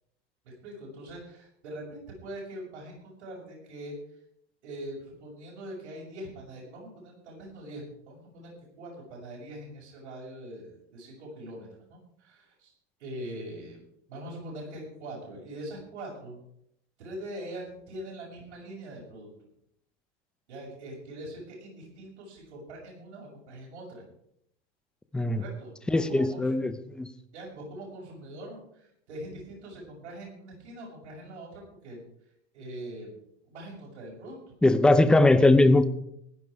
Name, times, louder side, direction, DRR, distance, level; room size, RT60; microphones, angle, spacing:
voice 1, 0.4-4.0 4.6-12.7 13.0-13.8 14.1-16.4 17.0-19.3 20.5-24.0 25.3-26.6 27.3-32.0 32.5-33.2 33.5-34.5, right 1 dB, 80° right, -4 dB, 6.5 m, -42 dB
voice 2, 25.9-27.1 34.6-35.9, left 2 dB, 5° left, 12 dB, 0.5 m, -20 dB
16.0 x 10.5 x 4.9 m, 0.73 s
supercardioid pair, 145°, 35 cm